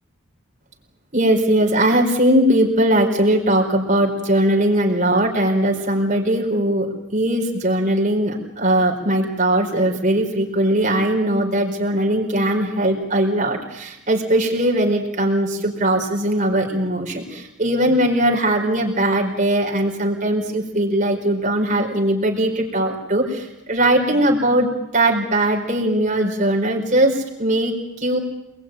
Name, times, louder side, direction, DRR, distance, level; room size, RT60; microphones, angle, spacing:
voice 1, 1.1-28.2, right 1 dB, 35° right, 1 dB, 4.7 m, -20 dB
27.5 x 20.5 x 9.1 m, 0.96 s
head